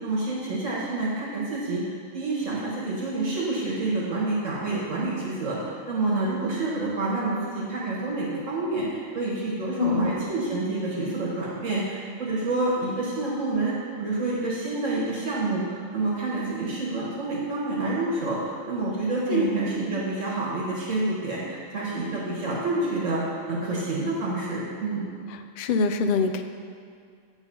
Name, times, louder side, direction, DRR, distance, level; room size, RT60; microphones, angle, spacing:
voice 1, 0.0-1.8 2.1-13.7 14.0-23.2 23.5-25.1, right 2 dB, 75° right, -6 dB, 1.8 m, -28 dB
voice 2, 9.8-10.1 19.3-19.5 25.6-26.4, left 4 dB, 65° left, 8 dB, 0.5 m, -24 dB
9.0 x 4.1 x 5.4 m, 2.3 s
omnidirectional pair, 1.3 m